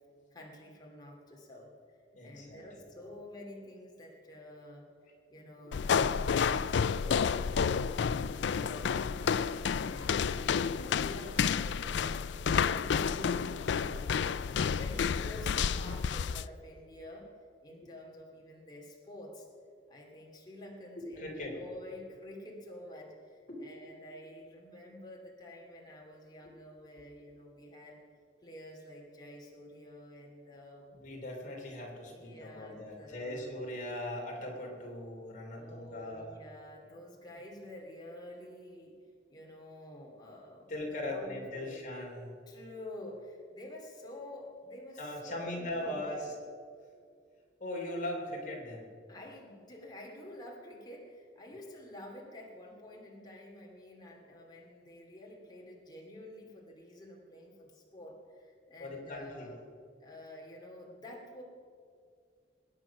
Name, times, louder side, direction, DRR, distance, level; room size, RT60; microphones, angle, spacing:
voice 1, 0.3-4.9 5.3-8.0 8.5-9.3 9.8-12.1 12.6-14.3 14.7-17.3 17.6-19.5 19.9-28.0 28.4-30.9 32.1-33.5 35.5-39.0 39.3-40.7 41.1-41.8 42.5-46.2 49.1-59.6 60.0-61.4, left 1 dB, 25° left, -2 dB, 2.6 m, -49 dB
voice 2, 2.1-2.7 21.0-21.6 23.5-23.6 31.0-36.4 40.7-42.4 45.0-46.3 47.6-48.9 58.8-59.5, left 1 dB, 45° left, 0 dB, 3.3 m, -39 dB
sound 1, 5.7-16.5, left 6 dB, 70° left, 0.4 m, -30 dB
21.5 x 9.5 x 5.9 m, 2.2 s
head